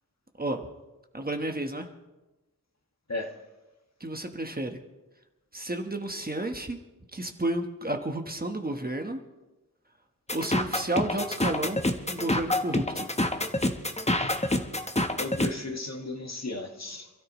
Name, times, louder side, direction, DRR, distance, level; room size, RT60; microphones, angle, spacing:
voice 1, 1.1-1.9 4.0-4.8 5.5-6.8 7.1-9.2 10.3-11.8 12.1-13.1, right 1 dB, 25° right, 4 dB, 1.3 m, -31 dB
sound 1, 10.3-15.5, left 1 dB, 20° left, 1.1 m, -27 dB
voice 2, 15.2-17.1, left 2 dB, 50° left, 3 dB, 1.8 m, -35 dB
27.0 x 13.5 x 3.1 m, 1.1 s
wide cardioid pair, 85°, 35 cm